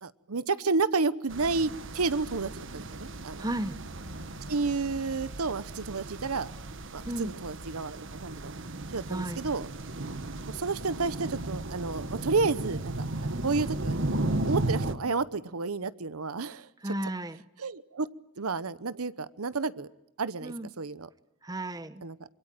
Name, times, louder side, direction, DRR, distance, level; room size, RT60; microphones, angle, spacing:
voice 1, 0.0-3.5 4.4-6.5 6.9-8.5 8.9-9.7 10.5-14.1 14.5-16.9 17.6-18.1 18.4-19.9 20.2-21.1 22.0-22.2, right 4 dB, 90° right, 16 dB, 0.9 m, -31 dB
sound 1, 1.3-14.9, right 2 dB, 60° right, 1.5 m, -35 dB
voice 2, 3.4-3.8 7.1-7.3 9.1-9.4 16.8-17.4 20.4-20.7 21.4-22.0, right 1 dB, 15° right, 14 dB, 1.0 m, -34 dB
26.0 x 23.5 x 9.1 m, 0.85 s
head